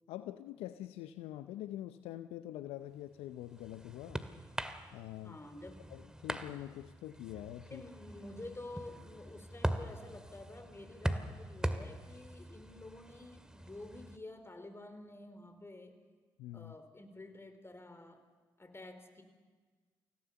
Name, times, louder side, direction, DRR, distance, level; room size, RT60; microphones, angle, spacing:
voice 1, 0.1-4.2 4.9-5.4 5.9-7.8 16.4-16.7, left 13 dB, 75° left, 12 dB, 0.6 m, -45 dB
sound 1, 3.1-14.2, right 1 dB, 5° right, 2.0 m, -42 dB
voice 2, 5.2-5.9 7.7-16.0 16.5-18.2 18.6-19.2, left 2 dB, 25° left, 8 dB, 4.0 m, -50 dB
25.5 x 17.0 x 6.9 m, 1.4 s
hypercardioid pair, 40°, 10 cm